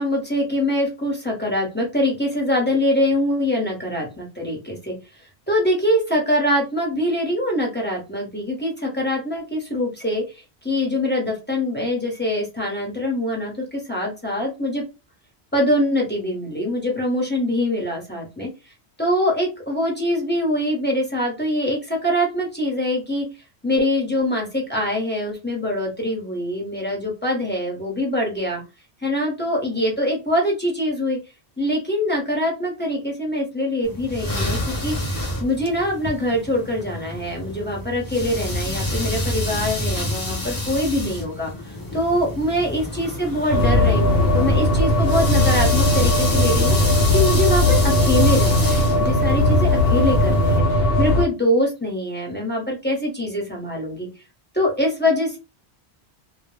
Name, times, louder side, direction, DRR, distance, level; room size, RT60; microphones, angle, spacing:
voice 1, 0.0-5.0 5.5-14.8 15.5-18.5 19.0-23.3 23.6-28.6 29.0-31.2 31.6-35.0 35.4-50.7 51.0-54.1 54.5-55.4, left 1 dB, 10° left, -2 dB, 0.9 m, -23 dB
sound 1, 33.8-50.6, left 1 dB, 30° left, 0.4 m, -28 dB
sound 2, 43.5-51.2, left 1 dB, 65° left, 0.9 m, -18 dB
2.2 x 2.2 x 3.2 m, 0.28 s
omnidirectional pair, 1.1 m